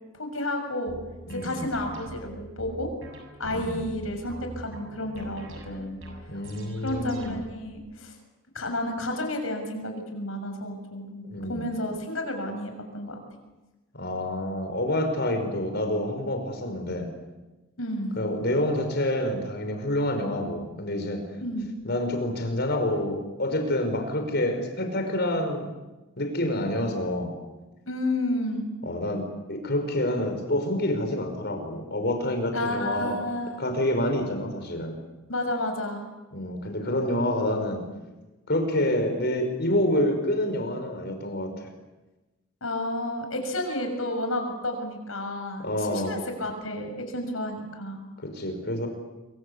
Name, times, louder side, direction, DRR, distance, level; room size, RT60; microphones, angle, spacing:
voice 1, 0.1-0.9 1.4-2.9 3.4-6.0 6.8-8.1 8.5-13.1 17.8-18.2 21.4-21.9 27.9-28.7 32.5-33.6 35.3-36.1 42.6-48.0, left 1 dB, 80° left, 5 dB, 6.7 m, -31 dB
sound 1, 0.9-7.7, right 1 dB, 70° right, 7.2 m, -43 dB
voice 2, 1.3-1.7 3.5-3.8 6.3-7.4 11.2-11.6 13.9-17.1 18.2-21.2 21.8-25.7 26.2-27.4 28.8-33.2 33.6-35.0 36.3-37.9 38.5-41.7 45.6-46.2 48.2-48.9, left 1 dB, 55° left, 5 dB, 5.7 m, -27 dB
25.5 x 24.5 x 8.3 m, 1.1 s
head